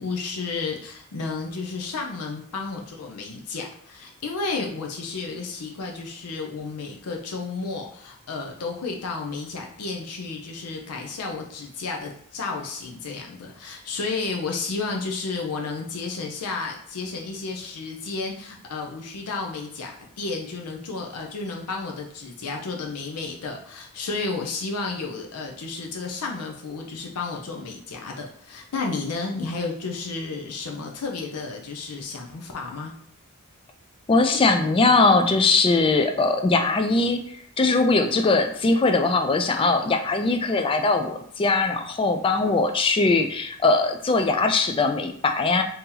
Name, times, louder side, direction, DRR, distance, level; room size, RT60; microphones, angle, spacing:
voice 1, 0.0-32.9, left 4 dB, 85° left, 1 dB, 0.5 m, -32 dB
voice 2, 34.1-37.2 37.6-45.6, left 3 dB, 25° left, 6 dB, 0.3 m, -21 dB
2.8 x 2.7 x 3.8 m, 0.64 s
head